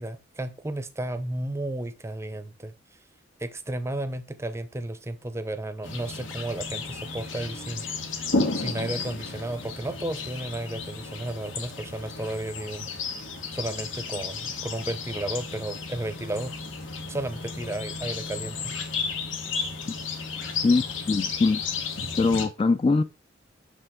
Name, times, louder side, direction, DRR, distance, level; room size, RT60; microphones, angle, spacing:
voice 1, 0.0-2.7 3.4-7.9 8.6-12.9 13.5-16.5 17.1-18.7, right 1 dB, 15° right, 0.6 m, -33 dB
sound 1, 5.8-22.4, left 4 dB, 80° left, 1.5 m, -33 dB
voice 2, 20.6-21.6 22.2-23.0, left 3 dB, 30° left, 0.3 m, -22 dB
6.7 x 5.5 x 3.6 m
head